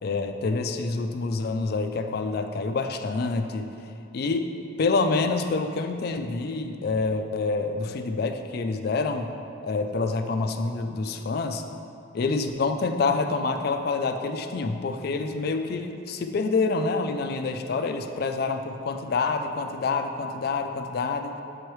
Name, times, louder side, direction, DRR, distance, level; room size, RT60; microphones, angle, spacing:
voice 1, 0.0-3.7 4.1-4.5 4.8-9.3 9.6-11.6 12.1-21.3, left 3 dB, 50° left, 7 dB, 0.3 m, -27 dB
7.4 x 4.6 x 3.1 m, 2.6 s
head